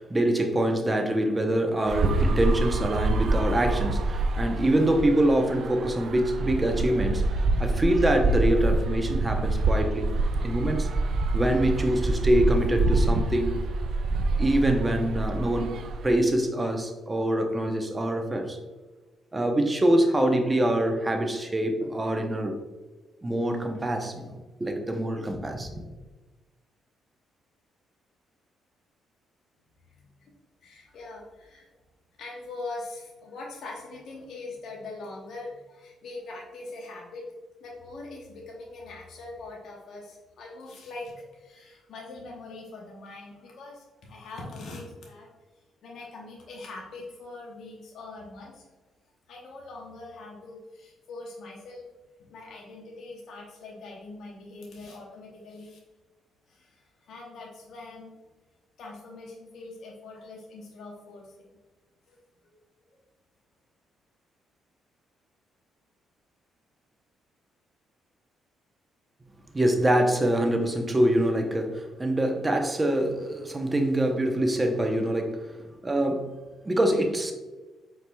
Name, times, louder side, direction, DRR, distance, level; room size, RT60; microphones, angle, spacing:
voice 1, 0.0-10.1 10.4-10.9 11.3-13.6 14.4-18.6 19.3-22.6 23.2-25.8 69.5-75.5 75.8-76.3 76.6-77.3, right 1 dB, 20° right, 4 dB, 0.7 m, -25 dB
sound 1, 1.9-16.2, right 2 dB, 60° right, 0.4 m, -26 dB
voice 2, 29.9-30.3 30.6-31.7 32.2-37.3 37.6-45.4 45.8-48.7 49.3-51.8 52.3-55.8 56.5-58.1 58.8-61.5 62.1-62.6, left 2 dB, 65° left, -2 dB, 0.9 m, -42 dB
4.8 x 4.4 x 2.2 m, 1.2 s
cardioid pair, 90°, 0 cm